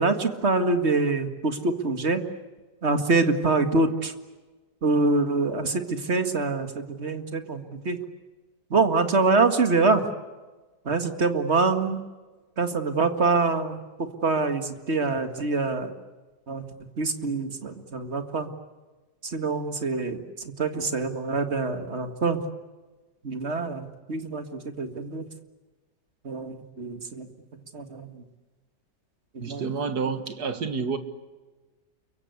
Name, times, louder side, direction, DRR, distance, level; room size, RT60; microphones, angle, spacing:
voice 1, 0.0-2.2 2.8-4.1 4.8-8.0 8.7-10.0 10.9-12.0 12.6-15.9 16.5-16.6 17.0-18.5 19.2-22.4 23.2-25.2 26.2-27.3 27.7-28.2 29.4-29.7, right 3 dB, 40° right, 7 dB, 2.1 m, -25 dB
voice 2, 29.4-31.0, right 5 dB, 60° right, 9 dB, 2.3 m, -29 dB
29.0 x 23.5 x 8.3 m, 1.2 s
omnidirectional pair, 1.9 m